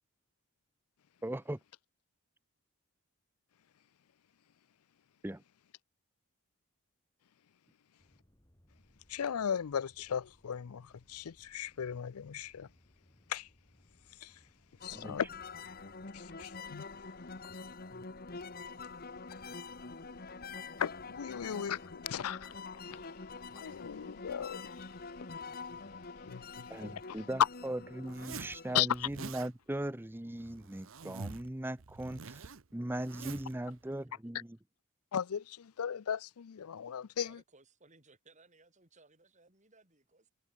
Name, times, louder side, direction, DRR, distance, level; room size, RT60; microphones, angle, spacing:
voice 1, 1.2-1.6 5.2-5.4 14.9-15.2 26.7-34.6, right 1 dB, 10° right, 0.6 m, -39 dB
sound 1, 8.0-15.8, equal, 15° left, 2.7 m, -67 dB
voice 2, 9.1-12.7 13.3-13.5 14.2-14.4 14.8-15.3 16.1-16.8 20.8-22.5 22.9-23.1 23.5-24.9 26.3-27.5 28.7-29.1 35.1-37.4, left 8 dB, 85° left, 0.5 m, -36 dB
sound 2, 14.8-28.8, left 4 dB, 45° left, 1.4 m, -46 dB
Zipper (clothing), 28.1-28.6 28.9-29.5 30.4-31.5 31.8-33.5, right 4 dB, 65° right, 0.9 m, -46 dB
voice 3, 37.2-40.3, right 3 dB, 35° right, 6.0 m, -63 dB
head